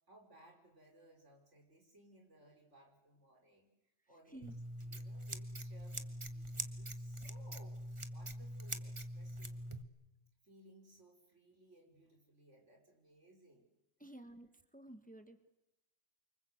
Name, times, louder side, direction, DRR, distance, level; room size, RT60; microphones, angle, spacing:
voice 1, 0.1-3.7 4.1-4.5 4.8-7.8 8.1-9.6 10.4-13.7 14.1-14.2, right 1 dB, 85° right, 2 dB, 5.9 m, -63 dB
voice 2, 4.3-4.6 14.0-15.5, right 1 dB, 5° left, 8 dB, 1.7 m, -53 dB
Scissors, 4.4-9.8, right 1 dB, 25° right, 1.4 m, -44 dB
28.5 x 25.0 x 8.1 m, 0.90 s
omnidirectional pair, 1.2 m